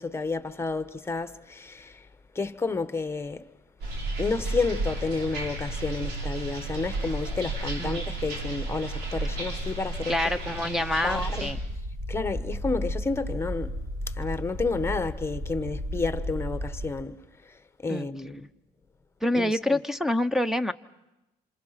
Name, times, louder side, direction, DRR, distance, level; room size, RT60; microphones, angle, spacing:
voice 1, 0.0-2.0 2.3-3.5 4.2-11.5 12.1-13.8 14.2-17.2 17.8-18.5 19.3-19.8, left 3 dB, 15° left, 1.3 m, -31 dB
sound 1, 3.8-11.5, right 2 dB, 85° right, 4.9 m, -32 dB
voice 2, 10.1-11.6 17.9-18.1 19.2-20.7, left 1 dB, ahead, 0.9 m, -26 dB
sound 2, 11.1-16.9, equal, 40° right, 6.1 m, -33 dB
27.5 x 27.0 x 5.9 m
cardioid pair, 110°, 17 cm